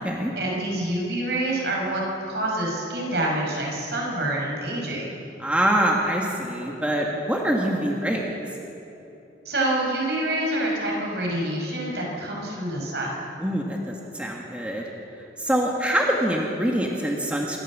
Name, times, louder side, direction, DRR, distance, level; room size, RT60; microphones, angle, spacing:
voice 1, 0.3-5.1 9.5-13.2, right 1 dB, 65° right, -2 dB, 5.8 m, -27 dB
voice 2, 5.4-8.3 13.4-14.9 15.4-17.6, right 1 dB, 5° right, -1 dB, 1.7 m, -24 dB
26.0 x 13.5 x 7.4 m, 2.9 s
head